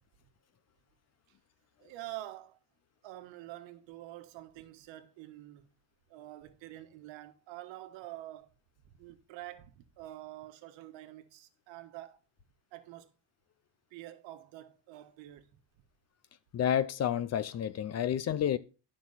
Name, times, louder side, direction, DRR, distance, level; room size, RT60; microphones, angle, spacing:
voice 1, 1.8-2.6 3.0-5.7 6.1-8.5 8.8-12.2 12.7-13.1 13.9-15.6, right 15 dB, 90° right, 1.4 m, -47 dB
voice 2, 16.5-18.6, left 9 dB, 35° left, 0.6 m, -30 dB
11.5 x 6.2 x 4.0 m
cardioid pair, 155°, 44 cm